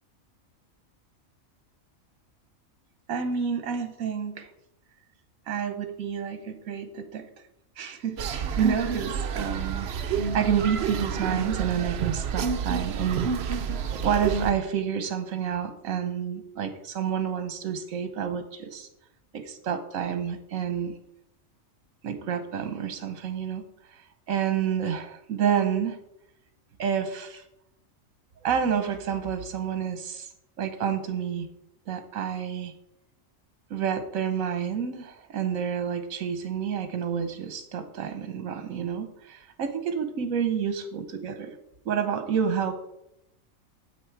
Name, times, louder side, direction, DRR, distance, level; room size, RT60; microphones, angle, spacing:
voice 1, 3.1-4.5 5.5-7.2 7.8-13.6 14.0-18.9 19.3-20.9 22.0-23.6 23.9-26.0 26.8-27.4 28.4-30.3 30.6-31.5 31.9-32.7 33.7-41.5 41.9-42.7, right 7 dB, 80° right, 8 dB, 1.2 m, -29 dB
sound 1, 8.2-14.5, right 6 dB, 55° right, 0.8 m, -29 dB
9.5 x 7.9 x 4.7 m, 0.82 s
omnidirectional pair, 1.4 m